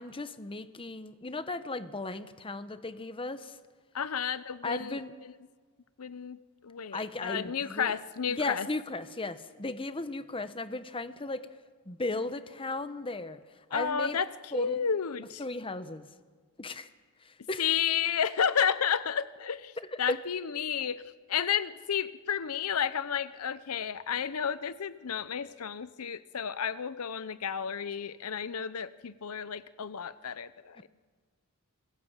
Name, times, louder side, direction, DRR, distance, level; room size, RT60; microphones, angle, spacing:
voice 1, 0.0-3.6 4.6-5.1 6.9-7.9 8.3-11.4 11.9-13.4 13.7-14.2 14.5-14.9 15.4-16.1 16.6-16.9 17.2-17.7 20.1-20.2, left 2 dB, 25° left, 12 dB, 0.9 m, -36 dB
voice 2, 3.9-5.0 5.2-5.3 6.0-6.4 6.6-8.7 13.7-14.3 14.5-15.4 17.6-19.7 20.0-21.0 21.3-30.8, left 7 dB, 75° left, 15 dB, 0.7 m, -31 dB
27.0 x 21.5 x 7.4 m, 1.5 s
head